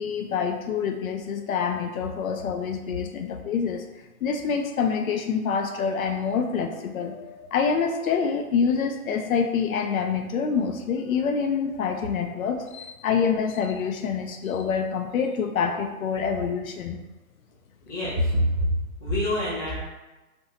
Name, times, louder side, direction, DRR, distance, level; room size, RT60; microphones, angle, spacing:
voice 1, 0.0-3.8 4.2-17.0, left 6 dB, 65° left, 4 dB, 0.5 m, -26 dB
voice 2, 17.8-18.7 19.0-19.9, equal, 5° left, -10 dB, 0.5 m, -25 dB
2.6 x 2.2 x 4.0 m, 1.1 s
hypercardioid pair, 135°, 44 cm